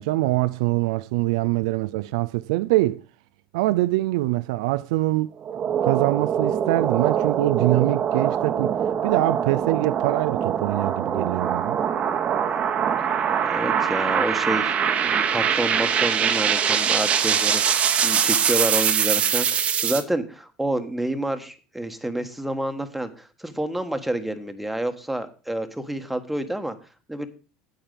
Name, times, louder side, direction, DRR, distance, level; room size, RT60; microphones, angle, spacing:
voice 1, 0.0-3.0 3.5-5.3 5.8-8.8 9.0-11.8, right 18 dB, 65° right, 0.4 m, -24 dB
sound 1, 5.4-20.0, right 8 dB, 35° right, 1.1 m, -23 dB
voice 2, 13.4-14.7 15.0-26.7 27.1-27.3, right 1 dB, 5° right, 1.4 m, -29 dB
9.0 x 8.6 x 5.1 m
figure-of-eight pair, 75°, 3 cm